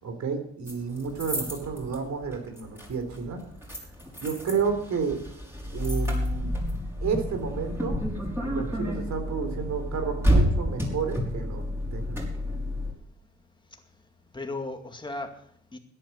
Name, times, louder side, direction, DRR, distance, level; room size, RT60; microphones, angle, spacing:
voice 1, 0.0-3.4 4.2-5.2 5.7-6.5 7.0-8.0 8.4-11.6 11.9-12.2, right 6 dB, 65° right, 7 dB, 3.9 m, -31 dB
sound 1, 0.7-12.9, equal, 10° right, 5.8 m, -30 dB
voice 2, 13.7-14.0 14.3-15.8, left 2 dB, 15° left, 5 dB, 2.2 m, -37 dB
14.0 x 10.5 x 6.6 m, 0.66 s
cardioid pair, 90°, 30 cm